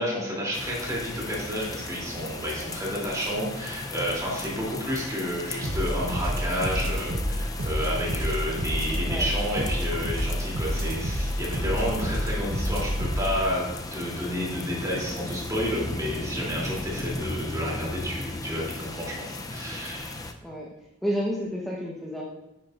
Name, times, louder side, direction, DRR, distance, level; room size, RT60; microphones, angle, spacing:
voice 1, 0.0-13.6 13.9-20.2, equal, 15° right, -5 dB, 3.0 m, -30 dB
sound 1, 0.5-20.3, left 2 dB, 20° left, 0.5 m, -36 dB
sound 2, 5.6-13.4, equal, 80° right, 1.1 m, -29 dB
voice 2, 21.0-22.2, equal, ahead, -5 dB, 1.0 m, -30 dB
9.3 x 9.1 x 2.5 m, 0.96 s
head